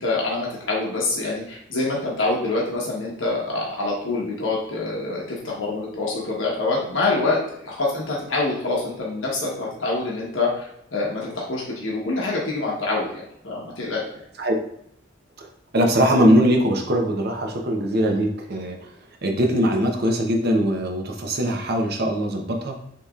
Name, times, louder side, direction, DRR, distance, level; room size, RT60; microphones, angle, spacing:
voice 1, 0.0-7.4 7.6-14.0, left 3 dB, 80° left, -4 dB, 1.1 m, -26 dB
voice 2, 15.7-18.8 19.2-22.7, equal, 55° right, 2 dB, 0.8 m, -21 dB
6.5 x 3.0 x 2.4 m, 0.74 s
head